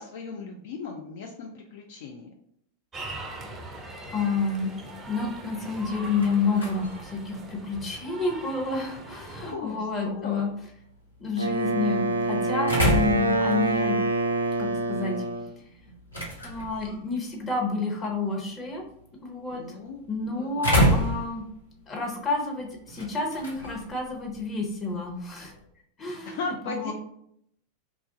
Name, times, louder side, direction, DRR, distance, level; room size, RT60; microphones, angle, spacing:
voice 1, 0.0-2.3 9.4-10.5 19.5-20.0 20.3-20.9 26.2-26.9, left 4 dB, 55° left, 1 dB, 0.4 m, -37 dB
sound 1, 2.9-9.5, right 2 dB, 20° right, 0.5 m, -41 dB
voice 2, 4.1-4.7 5.1-10.5 11.2-14.0 14.6-15.2 16.4-18.8 19.2-19.6 20.1-21.4 21.9-25.5 26.0-26.9, left 3 dB, 20° left, 0 dB, 0.8 m, -29 dB
sound 2, 5.8-25.6, equal, 85° left, 1.0 m, -32 dB
Wind instrument woodwind instrument, 11.4-15.5, right 2 dB, 75° right, 0.4 m, -26 dB
2.9 x 2.4 x 3.7 m, 0.72 s
figure-of-eight pair, 90°, 0 cm